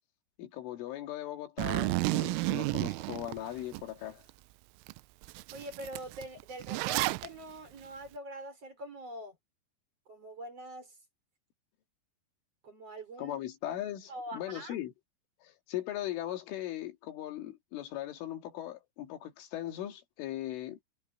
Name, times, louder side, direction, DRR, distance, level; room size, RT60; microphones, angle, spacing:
voice 1, 0.4-4.2 13.2-14.9 15.4-20.8, left 13 dB, 75° left, 4.6 m, -39 dB
Zipper (clothing), 1.6-3.8 4.3-4.4 4.9-5.0 5.2-7.3, right 22 dB, 85° right, 3.2 m, -31 dB
voice 2, 5.5-9.4 10.1-11.0 12.6-13.4 14.1-14.8, right 1 dB, 30° right, 5.3 m, -44 dB
omnidirectional pair, 5.7 m